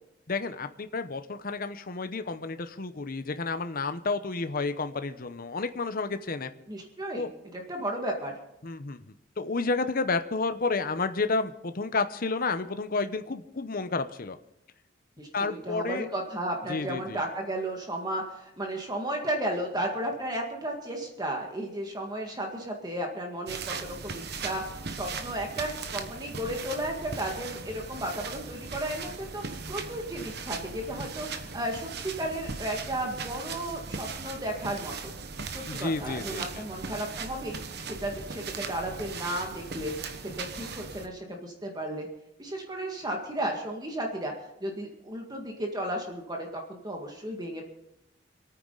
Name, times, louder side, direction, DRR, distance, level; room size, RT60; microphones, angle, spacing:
voice 1, 0.3-6.5 7.1-7.3 8.6-14.4 15.3-16.1 16.7-17.2 35.7-36.6, left 3 dB, 50° left, 9 dB, 0.8 m, -31 dB
voice 2, 6.7-7.3 7.5-8.3 15.2-29.4 29.7-35.1 35.5-37.6 38.0-39.9 40.2-42.1 42.4-44.3 44.6-47.6, right 1 dB, 20° right, 1 dB, 1.9 m, -34 dB
sound 1, 23.5-41.1, right 4 dB, 60° right, 1.1 m, -38 dB
27.0 x 9.5 x 3.9 m, 0.83 s
head